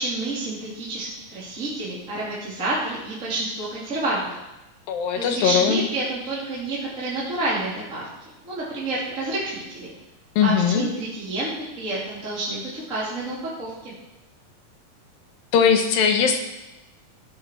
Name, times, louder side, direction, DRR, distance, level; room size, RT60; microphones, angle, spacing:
voice 1, 0.0-4.3 5.1-8.1 8.4-9.9 10.4-13.9, right 2 dB, 25° right, -8 dB, 3.1 m, -29 dB
voice 2, 4.9-5.8 10.4-10.9 15.5-16.4, left 7 dB, 85° left, 5 dB, 3.1 m, -20 dB
14.5 x 10.5 x 4.6 m, 0.98 s
omnidirectional pair, 4.0 m